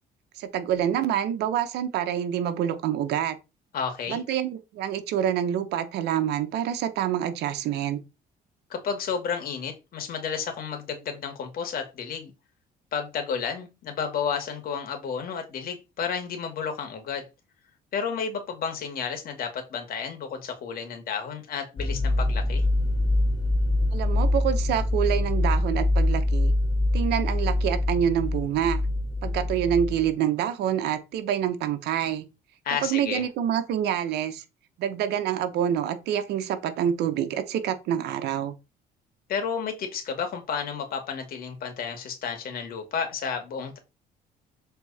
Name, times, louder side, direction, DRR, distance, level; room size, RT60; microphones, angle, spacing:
voice 1, 0.4-3.4 4.1-8.0 23.9-26.5 26.9-28.8 29.2-32.2 32.8-34.4 34.8-38.5, right 9 dB, 80° right, 1.1 m, -27 dB
voice 2, 3.7-4.2 8.7-12.3 12.9-17.2 17.9-22.6 32.6-33.2 39.3-43.8, left 6 dB, 60° left, 2.3 m, -31 dB
sound 1, 21.8-30.0, left 1 dB, 25° left, 2.5 m, -24 dB
7.0 x 4.0 x 4.2 m
cardioid pair, 110°, 17 cm